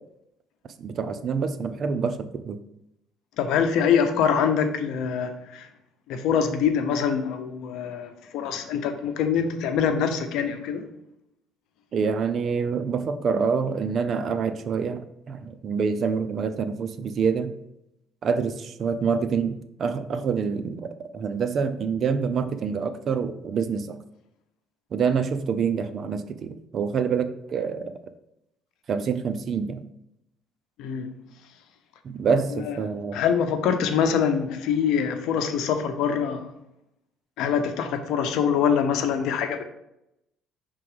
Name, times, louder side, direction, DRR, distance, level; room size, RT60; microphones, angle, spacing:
voice 1, 0.8-2.6 11.9-17.5 18.2-24.0 24.9-27.9 28.9-29.8 32.0-33.2, right 6 dB, 50° right, 10 dB, 0.5 m, -26 dB
voice 2, 3.4-5.7 6.1-10.8 30.8-31.1 32.6-32.8 33.1-36.5 37.4-39.6, left 7 dB, 75° left, 8 dB, 0.8 m, -24 dB
5.9 x 3.8 x 4.9 m, 0.84 s
cardioid pair, 105°, 0 cm